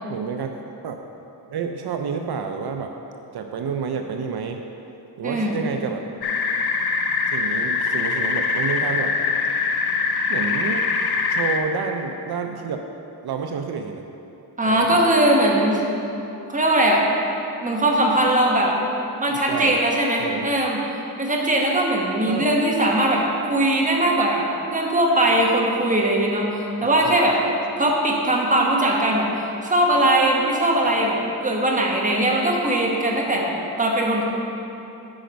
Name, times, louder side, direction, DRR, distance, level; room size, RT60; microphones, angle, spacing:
voice 1, 0.1-0.5 0.8-1.0 1.5-2.9 3.3-4.6 5.2-6.0 7.3-9.1 10.3-10.9 11.3-12.8 13.2-14.1 14.7-14.9 19.3-19.7 20.2-20.5 22.3-22.5 27.0-27.9, right 6 dB, 75° right, 5 dB, 0.5 m, -29 dB
voice 2, 5.2-5.6 14.6-15.8 16.5-17.0 17.6-18.7 19.2-20.8 21.2-23.2 23.5-27.4 27.8-29.3 29.6-34.2, right 1 dB, 20° right, -1 dB, 1.1 m, -20 dB
sound 1, 6.2-11.6, left 5 dB, 75° left, 0.7 m, -23 dB
8.9 x 5.2 x 5.1 m, 2.9 s
wide cardioid pair, 125°, 39 cm